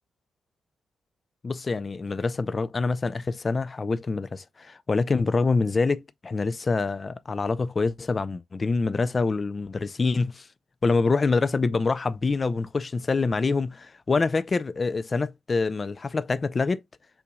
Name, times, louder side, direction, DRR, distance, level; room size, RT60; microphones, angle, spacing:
voice 1, 1.4-10.5 10.8-16.8, left 4 dB, 25° left, 0.4 m, -26 dB
5.7 x 4.0 x 2.2 m
wide cardioid pair, 145°, 0 cm